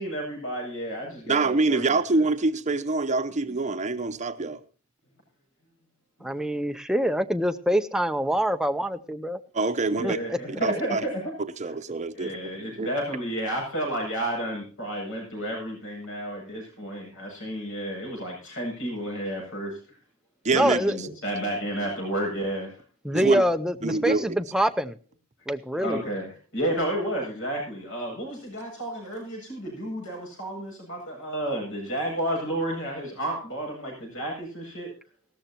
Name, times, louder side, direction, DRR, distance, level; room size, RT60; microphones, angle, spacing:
voice 1, 0.0-1.8 2.1-2.2 6.2-6.3 9.8-11.3 12.1-19.8 20.6-22.7 25.8-34.9, right 1 dB, 60° left, 7.6 m, -31 dB
voice 2, 1.3-4.6 9.5-10.2 10.6-11.0 11.6-12.9 20.4-20.8 23.1-23.4 23.8-24.2, right 3 dB, 35° right, 0.9 m, -25 dB
voice 3, 6.2-9.4 10.0-10.4 20.5-21.0 23.0-25.0 25.5-26.0, equal, 5° right, 0.6 m, -25 dB
18.0 x 13.5 x 2.9 m
head